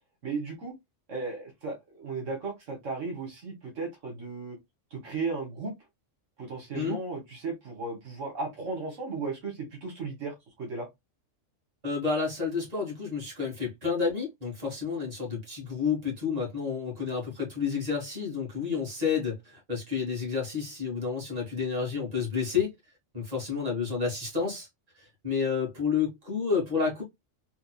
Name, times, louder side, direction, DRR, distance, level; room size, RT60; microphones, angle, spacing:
voice 1, 0.2-0.7 1.1-4.6 4.9-5.7 6.4-10.9, right 4 dB, 75° right, 1.5 m, -35 dB
voice 2, 11.8-22.7 23.1-24.7 24.9-27.0, left 6 dB, 30° right, 1.8 m, -30 dB
3.6 x 3.1 x 2.3 m
omnidirectional pair, 1.3 m